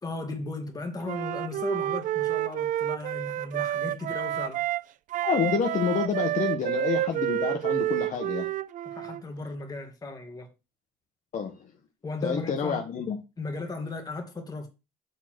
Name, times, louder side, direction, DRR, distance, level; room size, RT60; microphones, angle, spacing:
voice 1, 0.0-4.6 8.9-10.5 12.0-12.8 13.4-14.7, left 3 dB, 20° left, 2.2 m, -36 dB
Wind instrument woodwind instrument, 1.0-4.9 5.1-9.2, right 12 dB, 50° right, 0.4 m, -29 dB
voice 2, 5.2-8.5 11.3-11.6 12.2-13.2, left 7 dB, 50° left, 1.3 m, -28 dB
7.2 x 3.9 x 6.2 m
cardioid pair, 110°, 17 cm